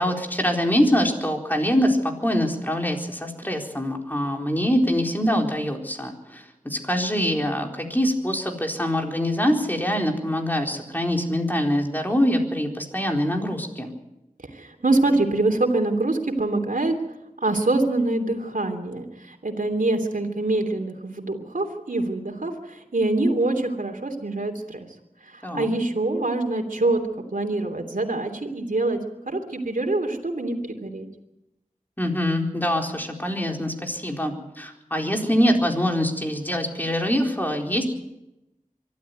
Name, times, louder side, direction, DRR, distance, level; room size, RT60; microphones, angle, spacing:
voice 1, 0.0-13.9 25.4-25.7 32.0-37.8, equal, 15° left, 1 dB, 4.2 m, -24 dB
voice 2, 14.5-16.9 17.4-24.8 25.2-27.0 27.3-29.0 29.3-31.1, right 2 dB, 75° right, 2 dB, 3.1 m, -25 dB
24.0 x 13.0 x 9.4 m, 0.93 s
wide cardioid pair, 40°, 14 cm